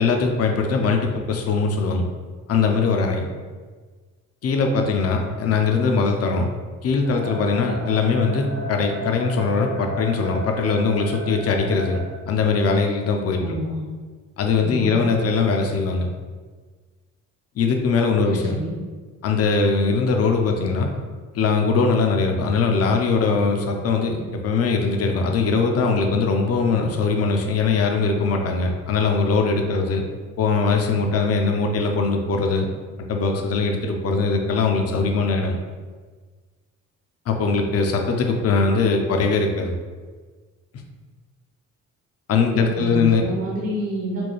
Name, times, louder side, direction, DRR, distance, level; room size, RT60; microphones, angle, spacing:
voice 1, 0.0-2.0 2.5-3.3 4.4-6.5 6.8-12.0 12.3-13.4 14.4-16.1 17.6-18.5 19.2-20.9 21.3-30.0 30.4-32.7 33.1-35.6 37.3-39.7 42.3-43.2, left 4 dB, 55° left, 3 dB, 0.6 m, -21 dB
sound 1, 7.0-12.1, left 1 dB, 35° right, 0.7 m, -34 dB
voice 2, 13.4-13.8 14.6-15.0 18.3-18.7 42.7-44.2, right 1 dB, 55° right, -4 dB, 1.0 m, -28 dB
4.3 x 2.3 x 3.1 m, 1.5 s
cardioid pair, 90°, 30 cm